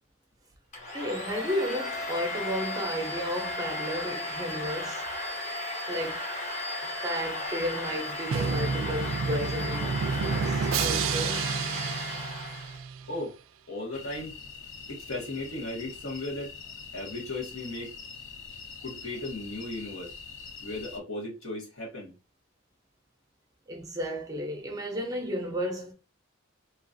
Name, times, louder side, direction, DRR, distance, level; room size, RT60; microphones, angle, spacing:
Domestic sounds home sounds, 0.7-12.8, left 2 dB, 35° left, 0.8 m, -35 dB
voice 1, 0.9-5.0 5.9-6.3 6.8-11.6 12.0-12.1 23.7-25.9, equal, 15° right, 0.6 m, -33 dB
Drum, 8.3-13.2, right 5 dB, 70° right, 0.3 m, -30 dB
voice 2, 13.7-14.4 14.9-16.5 16.9-17.9 18.8-20.1 20.6-22.1, left 2 dB, 85° left, 1.4 m, -36 dB
sound 1, 13.9-21.0, left 5 dB, 65° left, 0.6 m, -44 dB
2.9 x 2.4 x 2.6 m
head